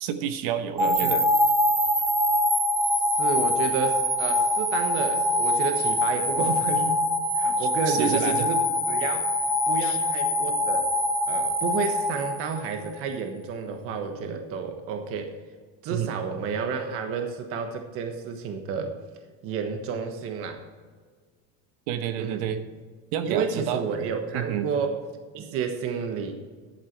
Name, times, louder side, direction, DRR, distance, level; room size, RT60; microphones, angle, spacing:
voice 1, 0.0-1.2 7.6-8.5 9.8-10.0 15.9-16.1 21.9-22.6 23.1-23.8 24.3-24.6, right 9 dB, 90° right, 9 dB, 1.2 m, -29 dB
sound 1, 0.8-13.0, left 1 dB, 20° right, 2.5 m, -24 dB
voice 2, 1.0-1.3 3.2-7.0 7.3-9.3 9.7-10.9 11.3-15.3 15.8-19.0 19.4-20.6 22.2-22.5 23.2-25.0 25.3-26.3, right 5 dB, 50° right, 5 dB, 1.3 m, -30 dB
12.0 x 8.2 x 4.6 m, 1.5 s
cardioid pair, 165°, 30 cm